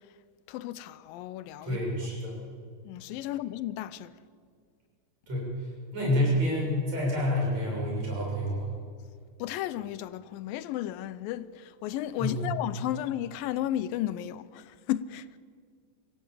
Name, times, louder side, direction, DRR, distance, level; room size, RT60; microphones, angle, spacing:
voice 1, 0.5-1.8 2.9-4.1 9.4-15.3, left 13 dB, 85° left, 2.4 m, -34 dB
voice 2, 1.6-2.4 5.3-5.5 5.9-8.7 12.2-12.5, left 1 dB, 50° right, 8.1 m, -28 dB
25.0 x 16.5 x 8.5 m
omnidirectional pair, 4.0 m